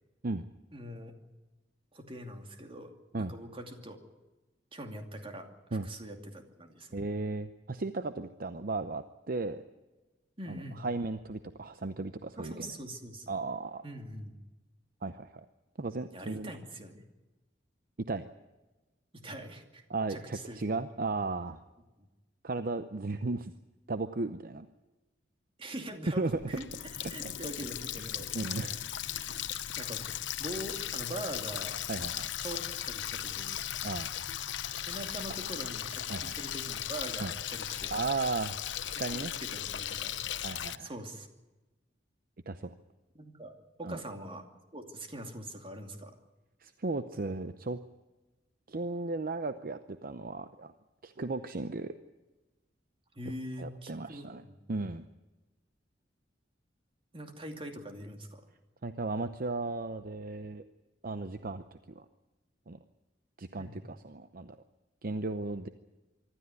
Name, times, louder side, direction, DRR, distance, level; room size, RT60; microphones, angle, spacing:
voice 1, 0.7-1.1 1.9-4.0 4.7-7.0 10.4-10.8 12.4-13.3 13.8-14.4 16.1-17.0 19.1-19.8 20.1-20.6 22.0-22.1 25.6-26.7 27.1-28.3 29.8-30.1 30.4-31.8 32.4-33.7 34.9-37.9 39.1-40.2 40.8-41.3 43.1-46.2 53.1-54.6 57.1-58.4 63.6-63.8, right 1 dB, 30° right, 5 dB, 2.5 m, -43 dB
voice 2, 6.9-9.6 10.5-12.7 13.3-13.8 15.0-15.4 15.8-16.5 18.1-18.3 19.9-21.6 22.4-23.5 23.9-24.7 26.2-26.4 27.2-27.3 28.0-28.1 28.3-28.9 31.9-32.3 33.8-34.1 36.1-36.4 37.2-37.3 37.9-38.6 38.8-39.3 40.4-40.9 42.5-42.7 43.8-44.0 46.6-47.8 48.7-50.7 51.0-51.9 53.6-54.4 54.7-55.1 58.8-60.6 61.0-62.1 62.7-62.8 63.4-64.6 65.0-65.7, right 3 dB, 50° right, 10 dB, 0.7 m, -35 dB
Water tap faucet, 26.3-40.8, left 11 dB, 80° left, 0.8 m, -37 dB
24.5 x 13.0 x 9.6 m, 1.1 s
head